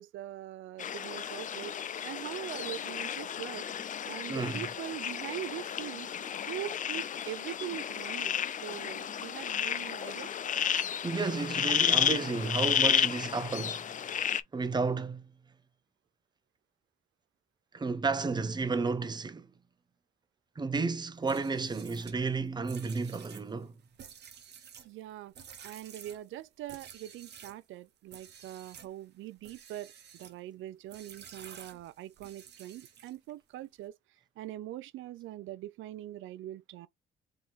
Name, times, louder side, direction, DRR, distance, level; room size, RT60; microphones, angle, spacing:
voice 1, 0.0-3.7 4.1-8.4 8.6-10.3 24.8-25.3 25.6-34.0 34.4-36.9, right 13 dB, 80° right, 0.5 m, -42 dB
sound 1, 0.8-14.4, left 8 dB, 40° left, 0.4 m, -32 dB
voice 2, 4.3-4.7 11.0-15.2 17.7-19.5 20.6-23.7, right 4 dB, 20° right, 0.7 m, -32 dB
sound 2, 21.2-27.6 28.1-28.9 29.4-30.4 30.9-33.3, right 8 dB, 60° right, 1.0 m, -51 dB
3.7 x 2.8 x 3.9 m
cardioid pair, 90°, 20 cm